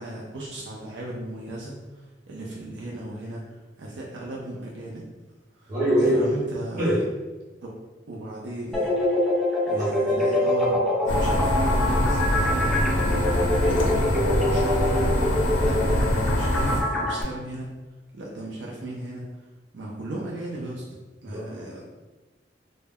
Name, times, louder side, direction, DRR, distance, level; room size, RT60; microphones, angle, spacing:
voice 1, 0.0-3.4 3.8-5.0 5.6-5.7 6.1-7.0 7.6-7.7 8.1-8.9 9.7-15.2 15.6-17.7 18.1-19.2 19.7-20.8 21.2-21.9, right 1 dB, 80° right, -3 dB, 0.4 m, -36 dB
voice 2, 5.7-6.3 6.7-7.0 9.7-10.2 21.3-21.6, equal, 45° right, -8 dB, 0.7 m, -24 dB
sound 1, 8.7-17.2, left 1 dB, ahead, 0.4 m, -25 dB
sound 2, 11.1-16.8, left 1 dB, 90° left, 0.5 m, -24 dB
2.1 x 2.1 x 3.4 m, 1.2 s
head